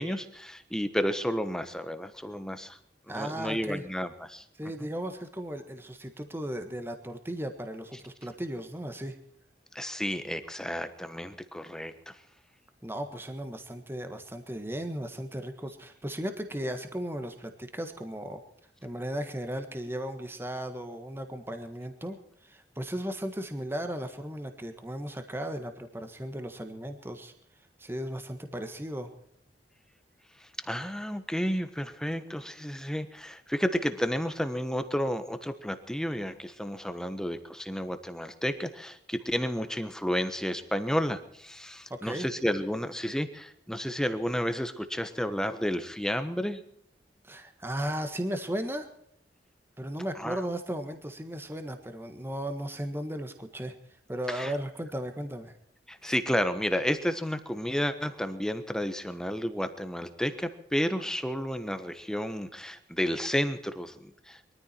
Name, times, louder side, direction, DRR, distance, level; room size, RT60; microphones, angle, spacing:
voice 1, 0.0-2.8 3.1-4.4 4.8-4.9 9.7-12.2 30.4-46.6 50.2-50.4 54.3-54.5 55.9-64.4, equal, 5° left, 10 dB, 1.2 m, -31 dB
voice 2, 3.1-3.8 4.6-9.2 12.8-18.4 18.8-22.2 22.4-27.3 27.8-29.1 41.9-42.3 47.2-48.9 49.8-53.7 54.1-55.6 56.0-56.1, right 1 dB, 15° right, 7 dB, 1.5 m, -36 dB
23.0 x 14.0 x 4.5 m, 0.70 s
head